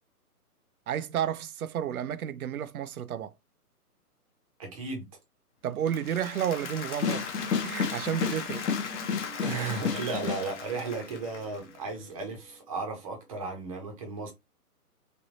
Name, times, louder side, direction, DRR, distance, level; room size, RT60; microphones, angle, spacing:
voice 1, 0.9-3.3 5.6-7.3 7.6-8.7, right 9 dB, 65° right, 0.5 m, -31 dB
voice 2, 4.6-5.1 9.4-14.3, right 4 dB, 20° right, 0.8 m, -35 dB
Applause, 5.7-11.9, left 6 dB, 50° left, 0.9 m, -40 dB
sound 1, 7.0-10.5, left 6 dB, 90° left, 0.7 m, -31 dB
Guitar, 8.5-13.6, right 1 dB, 15° left, 0.6 m, -52 dB
3.4 x 2.6 x 2.5 m
figure-of-eight pair, 140°, 47 cm